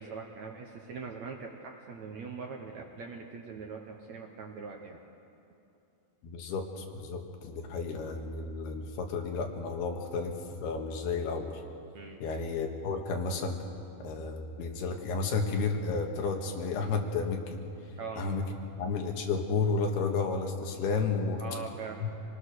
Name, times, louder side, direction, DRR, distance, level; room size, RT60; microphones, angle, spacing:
voice 1, 0.0-5.0 8.5-8.6 11.9-12.2 18.0-18.3 21.4-22.1, right 5 dB, 65° right, 1 dB, 1.9 m, -42 dB
voice 2, 6.2-10.4 10.6-11.6 12.2-13.6 14.0-17.6 18.2-18.4 18.8-21.4 22.0-22.1, left 4 dB, 80° left, 3 dB, 3.6 m, -32 dB
26.0 x 19.0 x 6.5 m, 2.7 s
omnidirectional pair, 4.5 m